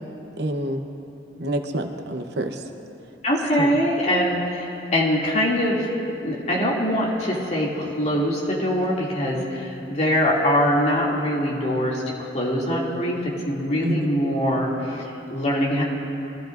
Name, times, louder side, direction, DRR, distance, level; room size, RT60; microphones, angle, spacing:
voice 1, 0.4-0.8 1.4-2.7 3.6-3.8 13.8-14.1, right 1 dB, 65° right, 5 dB, 0.9 m, -27 dB
voice 2, 3.2-5.9 6.2-12.0 12.3-15.8, equal, 40° left, -5 dB, 2.5 m, -23 dB
23.5 x 15.0 x 2.6 m, 2.8 s
head